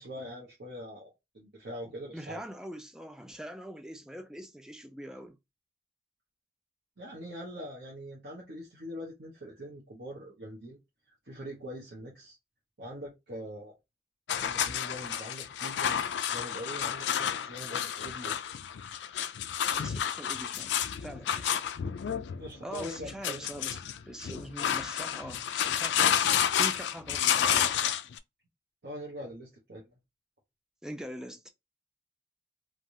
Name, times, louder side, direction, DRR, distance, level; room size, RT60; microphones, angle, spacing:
voice 1, 0.0-2.4 7.0-10.8 11.2-12.4 12.8-13.7 14.4-16.0 16.3-18.5 22.4-23.5 28.8-30.0, equal, 75° right, 1.0 m, -43 dB
voice 2, 2.1-5.4 19.8-21.6 22.6-23.8 24.1-27.7 30.8-31.5, equal, 5° right, 0.4 m, -43 dB
sound 1, 14.3-28.2, left 9 dB, 85° left, 0.4 m, -30 dB
3.3 x 2.4 x 2.7 m
head